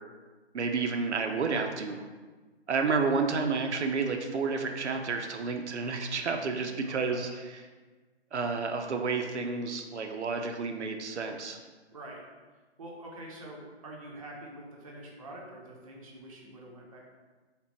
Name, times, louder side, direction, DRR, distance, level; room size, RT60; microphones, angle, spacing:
voice 1, 0.5-2.0 2.7-7.6 8.3-11.6, right 4 dB, 85° right, 4 dB, 0.5 m, -30 dB
voice 2, 6.8-7.4 11.9-12.2 12.8-17.0, right 1 dB, 30° right, -2 dB, 0.5 m, -46 dB
3.2 x 2.9 x 3.0 m, 1.3 s
figure-of-eight pair, 145°, 34 cm